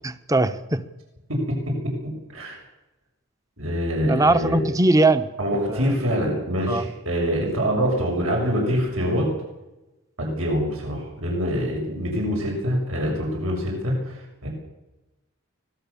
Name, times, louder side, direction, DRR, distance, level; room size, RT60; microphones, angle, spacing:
voice 1, 0.0-0.8 4.0-5.3 5.7-5.9 6.7-6.9, right 2 dB, 15° right, 11 dB, 1.0 m, -20 dB
voice 2, 1.3-1.9 2.3-2.6 3.6-4.6 5.4-9.3 10.2-14.5, equal, 80° right, -1 dB, 6.7 m, -25 dB
24.5 x 19.0 x 7.1 m, 1.0 s
head